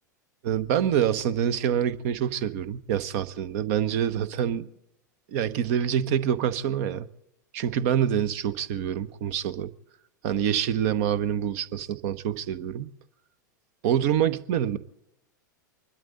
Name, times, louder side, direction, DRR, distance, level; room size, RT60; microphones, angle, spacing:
voice 1, 0.4-4.7 5.3-7.1 7.5-9.7 10.2-12.9 13.8-14.8, right 9 dB, 50° right, 0.9 m, -26 dB
24.5 x 12.5 x 3.9 m
figure-of-eight pair, 90°, 10 cm